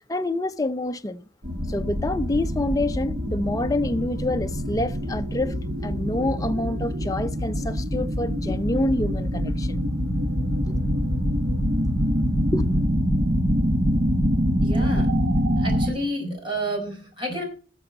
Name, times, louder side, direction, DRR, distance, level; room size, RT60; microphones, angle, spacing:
voice 1, 0.1-1.2 1.7-9.8 10.7-10.8 12.5-12.8, left 1 dB, 20° left, 0.5 m, -27 dB
sound 1, 1.4-15.9, equal, 55° right, 1.4 m, -25 dB
voice 2, 14.6-15.1 15.6-17.4, right 1 dB, 30° right, 4.4 m, -29 dB
18.0 x 6.8 x 4.2 m
head